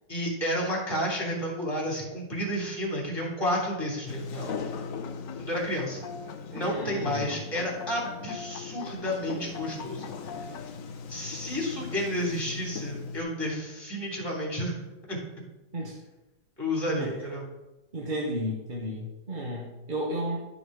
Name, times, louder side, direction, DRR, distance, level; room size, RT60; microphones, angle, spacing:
voice 1, 0.1-4.5 5.4-6.0 6.5-10.1 11.1-14.7 15.1-15.2 16.6-17.4, equal, 15° left, -3 dB, 3.0 m, -31 dB
Sliding door, 4.1-13.2, left 5 dB, 55° left, 1.1 m, -39 dB
sound 1, 5.0-10.7, left 6 dB, 75° left, 1.4 m, -43 dB
voice 2, 6.5-7.3 15.7-16.0 17.0-17.2 17.9-20.4, equal, 30° right, -2 dB, 1.1 m, -33 dB
12.0 x 5.4 x 4.7 m, 1.0 s
omnidirectional pair, 2.0 m